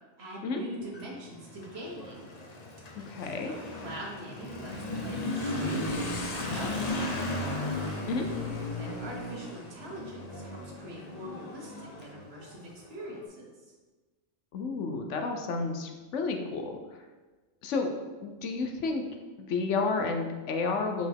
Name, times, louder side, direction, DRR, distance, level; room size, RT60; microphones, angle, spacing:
voice 1, 0.2-2.2 3.0-3.1 3.4-7.5 8.8-13.7, right 1 dB, 50° right, -2 dB, 1.5 m, -43 dB
Motorcycle / Accelerating revving vroom, 0.8-13.1, left 2 dB, 40° left, 0.7 m, -36 dB
voice 2, 3.0-3.5 8.1-8.3 14.5-16.7 17.6-17.9 18.2-19.0 19.4-21.1, left 4 dB, 70° left, 4 dB, 1.0 m, -31 dB
sound 1, 5.4-9.3 9.9-10.0, right 3 dB, 85° right, 1.3 m, -47 dB
5.8 x 5.1 x 3.5 m, 1.3 s
omnidirectional pair, 1.4 m